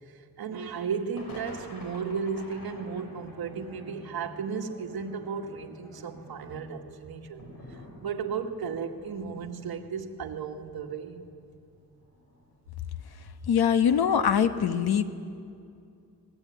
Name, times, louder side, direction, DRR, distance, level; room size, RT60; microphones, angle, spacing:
voice 1, 0.1-11.2, right 6 dB, 75° right, 4 dB, 2.0 m, -35 dB
sound 1, 1.1-12.6 12.9-13.0 13.4-13.5, left 1 dB, 70° left, 6.4 m, -51 dB
Bowed string instrument, 2.6-7.0, right 1 dB, 5° left, 7.4 m, -50 dB
voice 2, 13.5-15.0, left 8 dB, 90° left, 9 dB, 1.4 m, -23 dB
25.0 x 20.0 x 9.3 m, 2.5 s
wide cardioid pair, 175°, 37 cm